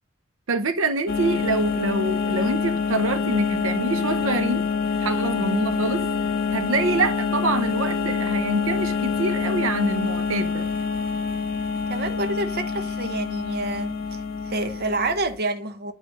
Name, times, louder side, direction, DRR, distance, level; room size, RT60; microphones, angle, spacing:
voice 1, 0.5-4.6 5.0-6.0 6.5-10.7, right 3 dB, 85° right, 0.8 m, -25 dB
sound 1, 1.1-15.2, left 5 dB, 50° left, 1.1 m, -26 dB
voice 2, 11.9-14.2 14.4-15.9, right 2 dB, 55° right, 1.0 m, -28 dB
9.6 x 3.3 x 6.4 m
head